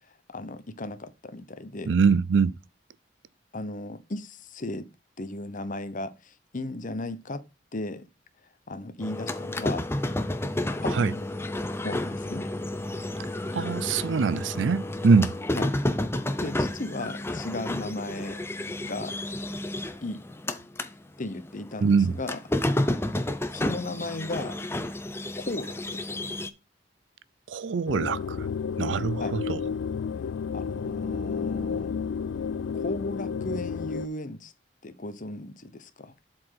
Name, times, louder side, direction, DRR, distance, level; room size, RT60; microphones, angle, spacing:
voice 1, 0.3-2.0 3.5-4.9 5.2-7.4 7.7-8.1 8.7-9.9 10.8-11.3 11.8-12.5 15.6-15.8 16.4-18.4 18.8-19.1 20.0-20.3 21.2-22.4 23.5-24.6 25.4-26.0 29.2-29.5 30.5-31.9 32.7-34.5 34.8-36.1, left 2 dB, 45° left, 0.9 m, -35 dB
voice 2, 1.9-2.5 11.0-11.1 13.5-15.3 21.8-22.1 27.5-28.5 28.8-29.6, right 5 dB, 85° right, 0.5 m, -23 dB
sound 1, 9.0-20.9 21.3-26.5, left 1 dB, 15° left, 0.7 m, -31 dB
sound 2, 27.9-34.1, left 6 dB, 80° left, 0.3 m, -31 dB
7.8 x 4.4 x 5.7 m
head